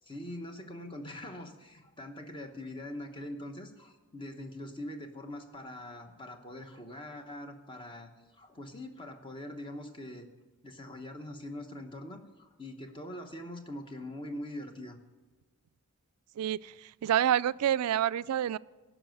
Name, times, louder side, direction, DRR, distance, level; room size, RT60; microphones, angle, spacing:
voice 1, 0.0-10.3 10.6-15.0, left 1 dB, 20° left, 5 dB, 1.0 m, -43 dB
voice 2, 16.4-18.6, right 10 dB, 90° right, 20 dB, 0.3 m, -28 dB
15.5 x 6.1 x 7.7 m, 1.2 s
head